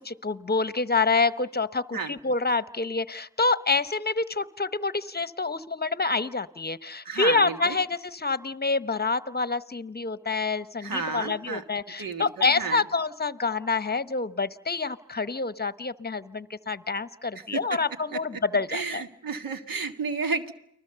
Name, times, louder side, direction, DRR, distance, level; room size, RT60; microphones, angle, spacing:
voice 1, 0.0-19.0, left 4 dB, 30° left, 14 dB, 1.0 m, -27 dB
voice 2, 7.0-7.8 10.8-11.6 12.0-12.9 17.3-17.8 18.1-18.4 18.7-20.5, right 4 dB, 75° right, 6 dB, 1.9 m, -32 dB
30.0 x 20.5 x 6.9 m, 0.79 s
cardioid pair, 40°, 34 cm